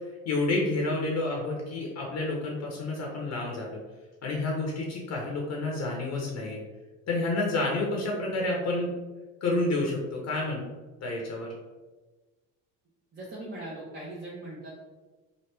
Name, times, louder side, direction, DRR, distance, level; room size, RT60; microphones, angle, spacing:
voice 1, 0.3-3.8 4.2-6.6 7.1-8.9 9.4-10.6 11.0-11.5, left 2 dB, 55° left, -1 dB, 0.7 m, -29 dB
voice 2, 13.1-14.7, right 1 dB, 30° right, -7 dB, 0.9 m, -40 dB
3.0 x 2.4 x 3.2 m, 1.3 s
supercardioid pair, 85°, 32 cm